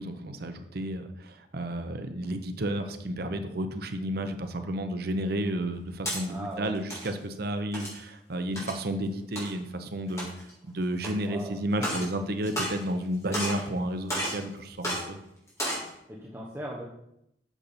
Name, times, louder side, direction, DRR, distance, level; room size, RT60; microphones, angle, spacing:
voice 1, 0.0-10.3 10.6-15.2, right 1 dB, 60° right, 8 dB, 0.8 m, -32 dB
sound 1, 5.7-6.2 6.7-7.1 7.7-8.0 8.6-8.8 9.4-9.5 10.1-10.5 11.0-11.1 11.7-12.1 12.4-13.0 13.3-13.7 14.1-14.4 14.8-15.0 15.5-15.9, equal, 15° left, 3.4 m, -32 dB
voice 2, 6.3-6.7 11.3-11.6 16.1-16.9, right 1 dB, 15° right, -3 dB, 1.0 m, -38 dB
8.3 x 7.0 x 4.2 m, 0.79 s
head